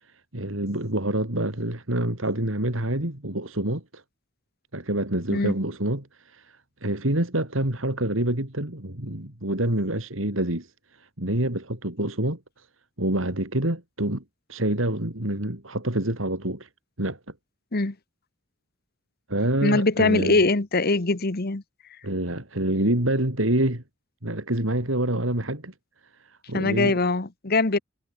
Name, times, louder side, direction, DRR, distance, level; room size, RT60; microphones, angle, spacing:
voice 1, 0.3-4.0 4.7-10.7 11.0-12.4 13.0-14.2 14.5-16.7 17.0-17.2 19.3-20.4 22.0-23.8 24.2-25.7 26.2-27.0, right 1 dB, 75° right, 4.3 m, -27 dB
voice 2, 19.6-21.6 26.5-27.8, left 3 dB, 50° left, 1.3 m, -22 dB
head